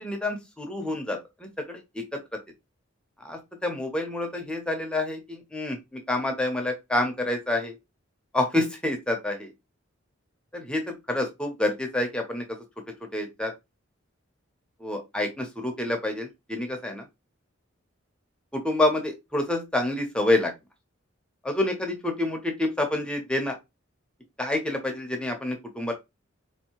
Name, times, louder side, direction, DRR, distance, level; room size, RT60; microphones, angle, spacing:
voice 1, 0.0-2.0 3.2-7.7 8.3-9.5 10.5-12.4 13.1-13.5 14.8-17.0 18.5-20.5 21.4-23.6 24.4-25.9, left 1 dB, 5° left, 0.6 m, -28 dB
3.9 x 2.7 x 2.9 m
head